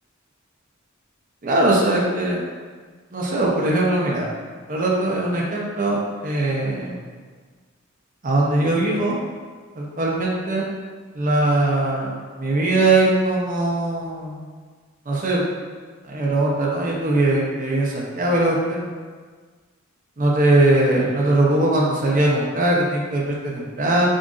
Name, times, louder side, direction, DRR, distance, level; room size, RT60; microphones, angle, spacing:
voice 1, 1.4-2.4 3.1-4.3 4.7-6.0 6.2-7.0 8.2-9.2 9.8-10.6 11.1-14.4 15.1-15.4 16.1-18.8 20.2-24.1, right 2 dB, 40° right, -3 dB, 0.7 m, -20 dB
7.3 x 2.6 x 2.5 m, 1.5 s
head